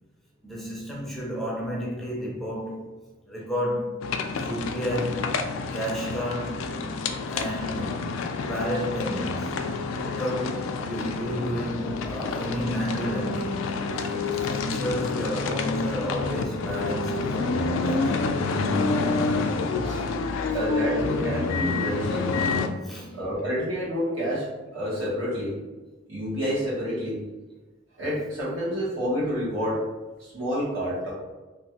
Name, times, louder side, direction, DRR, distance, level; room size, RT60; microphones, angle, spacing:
voice 1, 0.4-2.9 3.3-4.1 4.4-5.3 5.7-6.7 7.3-8.1 8.4-9.8 10.0-13.6 14.2-18.5 22.8-23.2, equal, ahead, 0.5 m, -31 dB
sound 1, 4.0-22.7, left 3 dB, 80° left, 0.3 m, -28 dB
voice 2, 19.6-20.0 20.5-22.3 23.1-25.5 26.1-27.2 28.0-29.9 30.2-31.1, equal, 80° right, 1.5 m, -28 dB
3.0 x 2.4 x 2.9 m
head